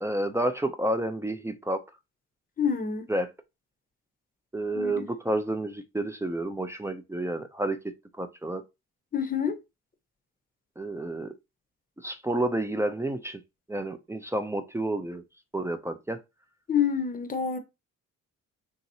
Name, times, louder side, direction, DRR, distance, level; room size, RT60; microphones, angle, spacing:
voice 1, 0.0-1.8 3.1-3.3 4.5-7.8 8.2-8.6 10.8-11.3 12.0-13.4 13.7-15.2 15.5-16.2, right 1 dB, 10° right, 0.4 m, -30 dB
voice 2, 2.6-3.1 4.7-5.1 9.1-9.6 16.7-17.6, left 7 dB, 30° left, 0.7 m, -27 dB
2.9 x 2.7 x 2.7 m
cardioid pair, 90°, 30 cm